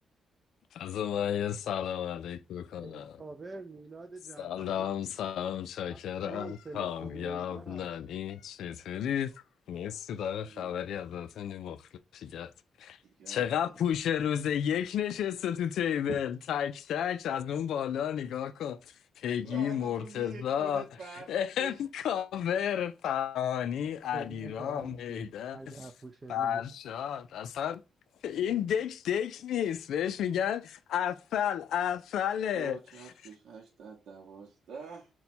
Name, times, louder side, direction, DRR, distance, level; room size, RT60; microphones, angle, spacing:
voice 1, 0.7-3.2 4.4-9.3 9.7-11.8 12.1-12.5 12.8-13.0 13.3-18.8 19.2-20.8 21.3-25.6 26.3-27.8 28.2-32.8, left 9 dB, 75° left, 0.3 m, -32 dB
voice 2, 2.7-4.9 5.9-6.0 6.3-7.9 24.1-26.6, right 3 dB, 20° right, 0.3 m, -45 dB
voice 3, 10.3-10.7 13.0-13.8 19.4-21.8 32.5-35.1, right 5 dB, 65° right, 0.8 m, -46 dB
4.0 x 2.2 x 4.3 m
wide cardioid pair, 180°, 0 cm